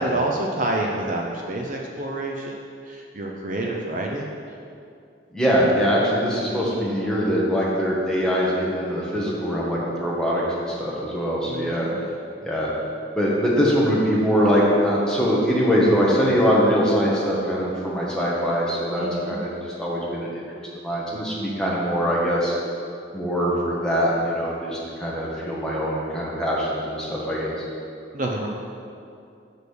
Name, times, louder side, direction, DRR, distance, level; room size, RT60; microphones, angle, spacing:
voice 1, 0.0-4.3 11.5-12.0 19.0-19.4 28.1-28.5, right 2 dB, 40° right, 0 dB, 0.6 m, -28 dB
voice 2, 5.3-11.9 12.4-12.7 13.1-20.4 20.8-22.5 23.1-27.5, equal, 5° left, -6 dB, 1.3 m, -22 dB
6.3 x 5.2 x 6.4 m, 2.4 s
head